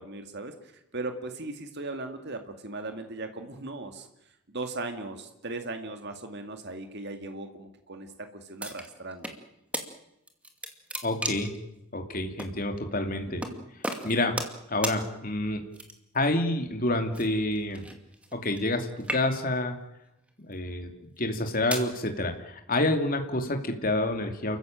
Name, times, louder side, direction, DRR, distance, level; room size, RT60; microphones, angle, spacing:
voice 1, 0.0-4.1 4.5-9.3 13.3-13.6, right 2 dB, 50° right, 6 dB, 2.2 m, -38 dB
sound 1, 8.6-9.4 9.7-9.9 10.3-11.6 12.4-12.5 13.4-13.6 13.8-14.6 14.8-15.0 15.7-16.2 17.1-18.7 19.0-19.6 20.3-20.5 21.2-21.9, right 1 dB, 5° right, 2.3 m, -35 dB
voice 2, 11.0-11.5 11.9-13.4 14.0-14.4 14.7-15.6 16.1-17.9 18.3-19.8 20.4-20.9 21.2-24.6, left 1 dB, 40° left, 5 dB, 2.7 m, -28 dB
30.0 x 15.0 x 9.1 m, 0.85 s
head